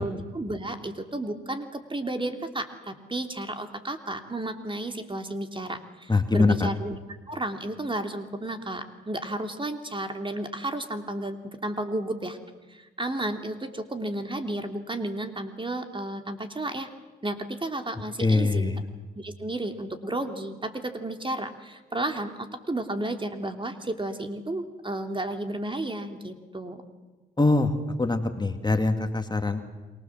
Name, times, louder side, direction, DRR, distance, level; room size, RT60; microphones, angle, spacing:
voice 1, 0.0-7.0 7.3-12.4 12.7-16.9 17.2-18.7 19.1-26.8, right 1 dB, 25° right, 6 dB, 3.1 m, -32 dB
voice 2, 6.1-6.7 18.2-18.8 27.4-27.7 28.0-29.6, left 3 dB, 20° left, 6 dB, 2.4 m, -23 dB
28.0 x 23.5 x 7.5 m, 1.3 s
supercardioid pair, 55°, 21 cm